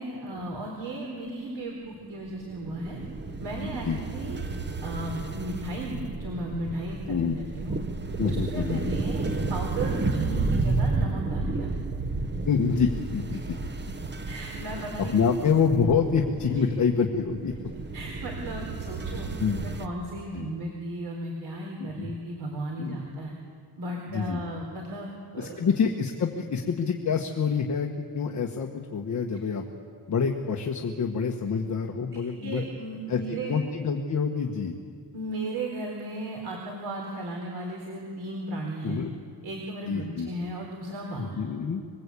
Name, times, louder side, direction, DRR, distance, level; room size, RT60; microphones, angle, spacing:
voice 1, 0.0-3.0 3.4-4.4 4.8-7.2 7.6-7.8 8.5-11.7 14.3-15.1 17.9-19.3 19.6-23.3 23.8-25.7 32.1-33.5 35.1-39.0 39.4-41.5, right 1 dB, 70° right, 0 dB, 4.0 m, -35 dB
sound 1, 2.3-19.9, right 3 dB, 25° right, 1.0 m, -32 dB
voice 2, 3.6-4.0 7.1-7.4 8.2-8.8 12.4-13.4 13.8-13.9 14.7-14.8 15.1-17.5 19.4-19.6 20.3-20.5 21.8-22.1 22.8-23.0 24.1-24.4 25.4-29.6 30.1-32.6 33.1-34.7 38.8-39.1 39.9-40.3 41.2-41.8, left 6 dB, 45° left, 2 dB, 1.5 m, -27 dB
25.5 x 22.0 x 8.5 m, 2.2 s
wide cardioid pair, 175°, 40 cm